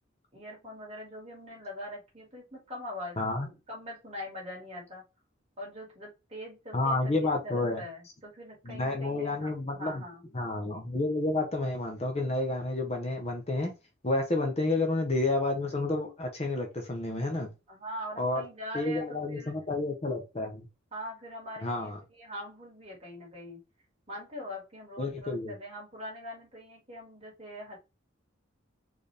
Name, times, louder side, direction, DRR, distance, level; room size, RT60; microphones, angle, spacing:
voice 1, 0.3-5.0 5.6-10.2 17.7-19.5 20.9-23.6 24.1-27.8, left 1 dB, 30° right, 2.2 m, -42 dB
voice 2, 3.2-3.5 6.7-7.8 8.6-10.0 10.3-13.7 14.0-17.5 18.2-18.4 18.7-20.7 21.6-22.0 25.0-25.5, left 2 dB, 30° left, 0.9 m, -30 dB
4.4 x 3.3 x 3.4 m
head